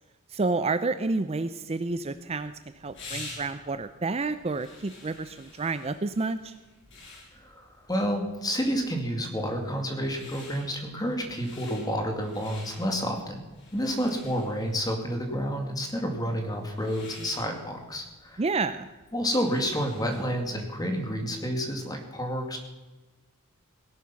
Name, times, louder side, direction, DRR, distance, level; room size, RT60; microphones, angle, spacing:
voice 1, 0.3-6.5 18.4-18.9, right 3 dB, 30° right, 12 dB, 0.5 m, -29 dB
sound 1, 1.9-20.4, left 3 dB, 55° left, 5.2 m, -49 dB
voice 2, 7.4-13.4 13.7-18.4 19.1-22.6, equal, 15° left, 4 dB, 2.2 m, -30 dB
18.0 x 11.0 x 5.8 m, 1.2 s
head